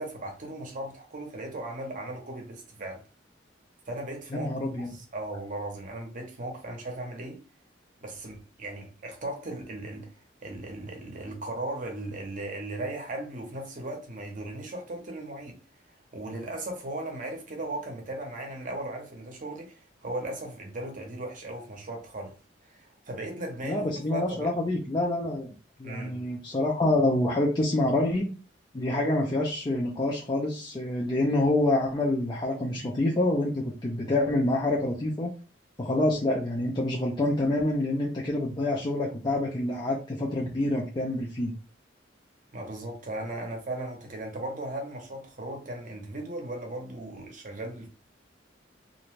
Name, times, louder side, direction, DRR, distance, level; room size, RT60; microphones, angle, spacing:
voice 1, 0.0-3.0 3.9-7.4 8.0-10.1 10.4-15.6 16.1-22.4 22.6-23.8 24.1-24.5 25.8-26.2 39.3-39.4 42.5-47.9, right 1 dB, 45° right, 0.7 m, -37 dB
voice 2, 4.3-4.9 23.6-25.5 25.8-28.3 28.7-35.3 35.8-41.5, left 1 dB, 25° left, 0.4 m, -27 dB
2.5 x 2.2 x 3.0 m
head